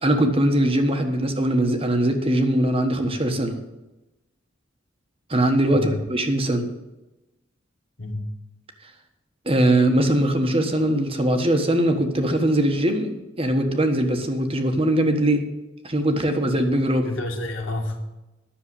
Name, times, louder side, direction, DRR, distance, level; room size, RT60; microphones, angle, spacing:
voice 1, 0.0-3.6 5.3-6.7 9.4-15.5 15.8-17.1, right 1 dB, 30° right, 5 dB, 1.3 m, -21 dB
voice 2, 5.7-6.0 8.0-8.2 17.0-18.0, left 1 dB, 90° left, 3 dB, 2.1 m, -29 dB
10.0 x 6.8 x 8.2 m, 1.0 s
head